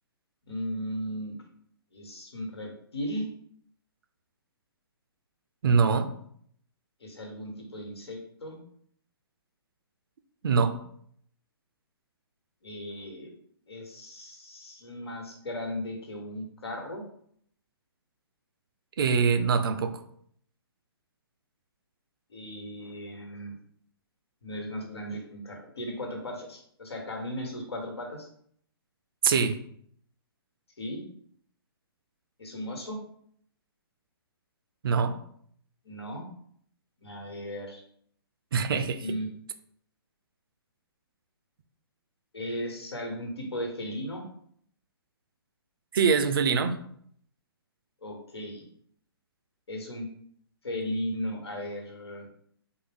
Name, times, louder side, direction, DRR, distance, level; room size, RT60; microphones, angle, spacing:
voice 1, 0.5-1.4 1.9-3.3 7.0-8.6 12.6-13.3 13.7-17.0 22.3-23.5 24.4-28.3 30.8-31.0 32.4-33.0 35.8-36.2 37.0-37.8 39.0-39.3 42.3-44.2 48.0-48.6 49.7-50.1 50.6-52.3, equal, 85° left, 2 dB, 1.3 m, -36 dB
voice 2, 5.6-6.1 10.4-10.7 19.0-20.0 29.2-29.6 34.8-35.2 38.5-39.2 45.9-46.8, right 5 dB, 60° right, 9 dB, 0.5 m, -24 dB
4.3 x 2.0 x 3.4 m, 0.65 s
hypercardioid pair, 140°, 13 cm